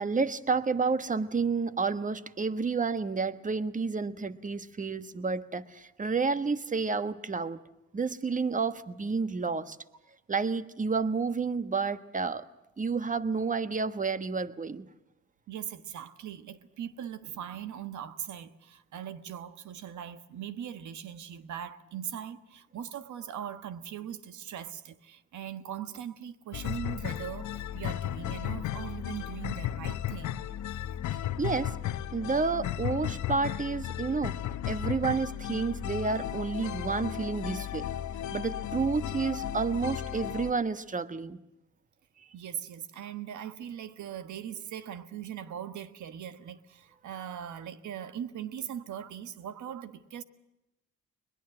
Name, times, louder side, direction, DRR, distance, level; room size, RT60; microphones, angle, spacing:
voice 1, 0.0-7.6 7.9-9.8 10.3-12.4 12.8-14.8 31.4-31.7 32.1-34.4 34.7-37.9 38.3-41.4, right 4 dB, 25° right, 1.3 m, -30 dB
voice 2, 15.5-30.4 42.3-50.2, right 9 dB, 70° right, 1.5 m, -40 dB
sound 1, 26.5-40.5, left 11 dB, 70° left, 1.0 m, -35 dB
21.5 x 21.5 x 7.8 m
cardioid pair, 90°, 30 cm